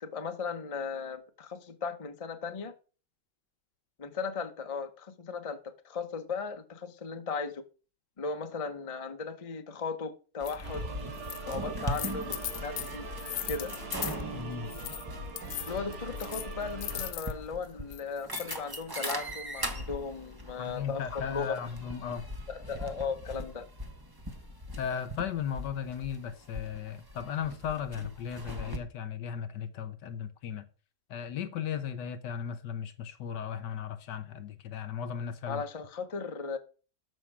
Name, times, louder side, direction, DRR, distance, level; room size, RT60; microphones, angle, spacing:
voice 1, 0.0-2.7 4.0-7.6 8.2-10.8 11.5-13.0 13.5-13.7 15.7-21.6 22.5-23.6 35.5-36.6, left 5 dB, 30° left, 0.7 m, -37 dB
sound 1, 10.4-10.5 11.1-11.6 11.8-14.2 14.7-15.0 15.4-17.3 17.9-19.1, left 14 dB, 85° left, 1.5 m, -38 dB
sound 2, 10.4-28.8, equal, 15° right, 0.9 m, -40 dB
sound 3, 10.6-17.1, right 3 dB, 85° right, 2.4 m, -42 dB
voice 2, 14.3-14.7 20.6-22.3 24.8-30.7 31.1-35.6, left 8 dB, 70° left, 1.3 m, -36 dB
13.0 x 5.7 x 4.9 m
omnidirectional pair, 2.1 m